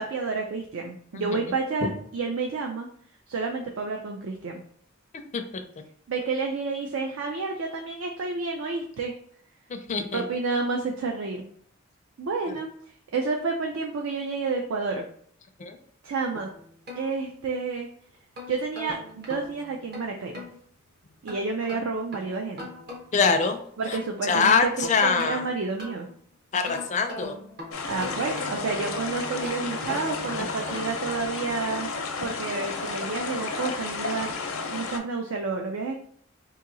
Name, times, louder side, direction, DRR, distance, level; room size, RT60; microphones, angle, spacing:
voice 1, 0.0-2.9 3.3-4.6 6.1-9.1 10.1-11.4 12.2-12.7 13.1-15.0 16.0-16.5 17.0-17.9 18.5-20.4 21.2-22.7 23.8-26.1 27.9-31.9 32.2-34.4 34.6-35.9, right 4 dB, 70° right, 2 dB, 0.4 m, -30 dB
voice 2, 9.7-10.2 12.5-12.6 15.6-15.8 23.1-23.6 23.9-24.0 24.3-25.4 26.5-27.3 30.4-30.5, left 5 dB, 35° left, 6 dB, 0.4 m, -24 dB
sound 1, 16.4-17.7 18.1-20.6 21.3-23.3 23.7-26.2 26.6-28.8 29.3-31.1, left 2 dB, 50° right, 1.0 m, -41 dB
sound 2, 27.7-35.0, left 4 dB, 80° left, 0.6 m, -32 dB
Wind instrument woodwind instrument, 27.9-32.2, equal, 20° right, 0.7 m, -42 dB
2.8 x 2.7 x 3.8 m, 0.62 s
head